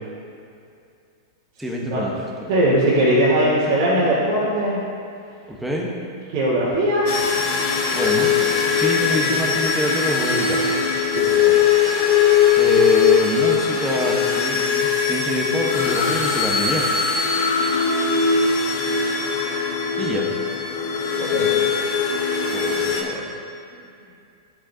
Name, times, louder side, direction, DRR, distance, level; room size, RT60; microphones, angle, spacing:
voice 1, 1.6-2.5 5.5-5.9 7.9-8.3 8.7-10.7 12.6-16.8 20.0-20.3 22.5-23.2, equal, 5° right, -3 dB, 1.2 m, -25 dB
voice 2, 2.5-4.8 6.3-7.3 11.1-11.5 21.2-21.5, right 1 dB, 55° right, -8 dB, 2.0 m, -20 dB
sound 1, 7.1-23.0, left 6 dB, 55° left, 1.1 m, -20 dB
11.5 x 7.3 x 2.8 m, 2.4 s
hypercardioid pair, 105°, 2 cm